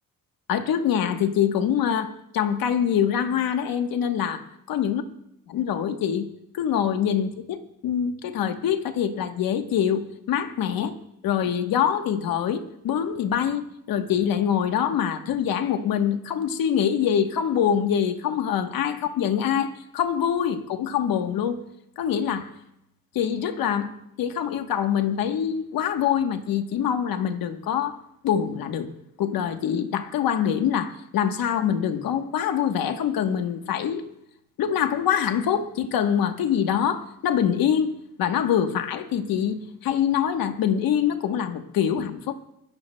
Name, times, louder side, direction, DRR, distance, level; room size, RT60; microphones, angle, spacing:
voice 1, 0.5-5.0 5.5-6.3 6.5-11.0 11.2-21.6 22.0-22.5 23.1-23.9 24.2-28.0 28.2-28.9 29.2-34.1 34.6-37.9 38.2-42.3, left 8 dB, 85° left, 1.2 m, -24 dB
25.5 x 13.5 x 2.2 m
cardioid pair, 135°, 34 cm